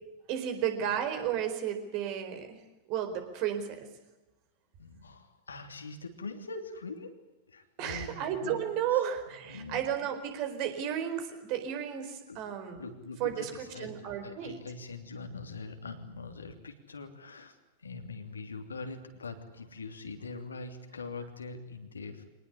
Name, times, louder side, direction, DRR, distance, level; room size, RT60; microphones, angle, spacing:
voice 1, 0.3-2.6 2.9-3.9 7.8-12.8 13.2-13.5 13.8-14.6, right 9 dB, 45° right, 7 dB, 4.3 m, -33 dB
voice 2, 4.8-7.2 7.5-8.6 8.9-9.9 12.3-12.4 12.8-22.3, left 3 dB, 75° left, 6 dB, 3.0 m, -43 dB
25.0 x 19.5 x 9.9 m, 1.0 s
figure-of-eight pair, 90°, 0 cm